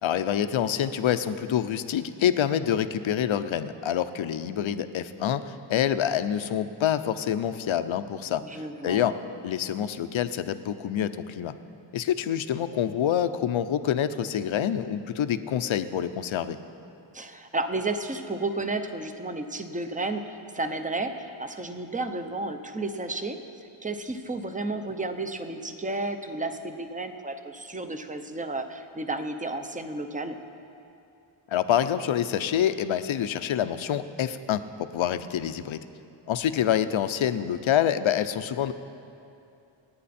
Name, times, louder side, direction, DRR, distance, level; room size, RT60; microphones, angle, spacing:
voice 1, 0.0-8.4 8.8-9.2 9.4-11.5 11.9-16.6 31.5-35.8 36.3-38.7, left 9 dB, 70° left, 11 dB, 0.7 m, -26 dB
voice 2, 8.4-9.1 17.1-23.4 23.8-30.4, right 2 dB, 15° right, 7 dB, 0.7 m, -32 dB
28.0 x 9.5 x 4.3 m, 2.6 s
wide cardioid pair, 160°, 50 cm